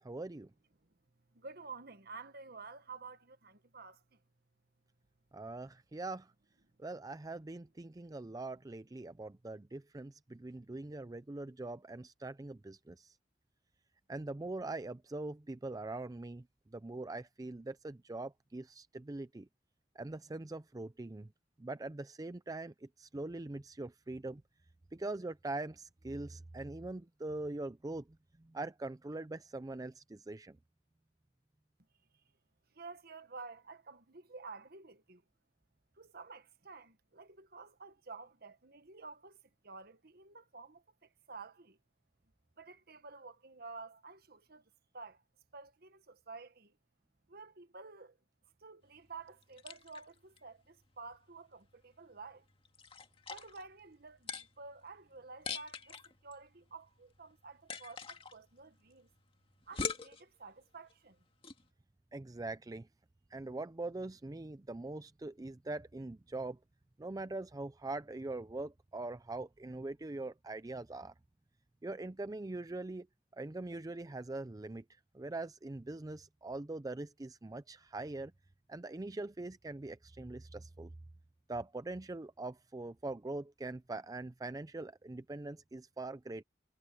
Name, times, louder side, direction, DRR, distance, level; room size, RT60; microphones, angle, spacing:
voice 1, 0.0-0.5 5.3-6.3 6.8-13.2 14.1-19.5 20.0-21.3 21.6-24.4 24.9-28.1 28.4-30.6 62.1-62.9 63.3-66.6 67.0-71.1 71.8-73.1 73.3-74.8 75.1-78.3 78.7-80.9 81.5-86.4, right 2 dB, 20° right, 0.5 m, -42 dB
voice 2, 1.3-4.2 32.7-35.2 36.0-41.8 42.6-45.2 45.5-46.7 47.3-48.2 48.6-52.4 53.3-59.1 59.7-61.2, right 4 dB, 60° right, 1.5 m, -51 dB
sound 1, 48.8-61.7, left 5 dB, 30° left, 2.0 m, -46 dB
head